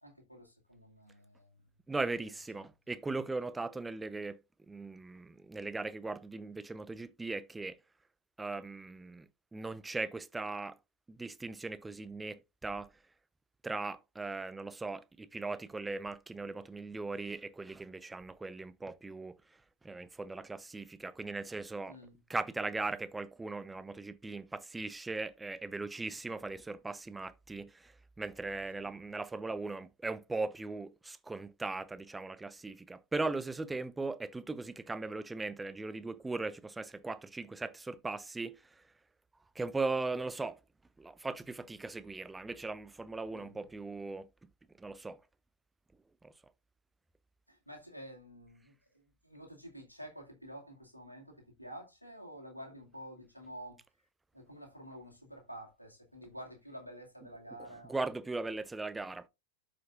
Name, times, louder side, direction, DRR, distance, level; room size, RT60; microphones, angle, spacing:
voice 1, 0.0-1.7 2.1-2.2 2.5-2.6 21.9-22.2 28.8-28.9 43.3-43.6 47.5-53.8 54.3-58.1, equal, 85° left, 2.1 m, -50 dB
voice 2, 1.9-4.4 4.7-7.8 8.4-10.8 11.1-12.9 13.6-19.4 19.8-22.0 22.3-38.8 39.6-40.6 41.0-44.3 44.8-45.2 46.2-46.3 57.9-59.3, right 3 dB, 10° right, 0.4 m, -39 dB
12.5 x 5.0 x 2.5 m
figure-of-eight pair, 90°, 0 cm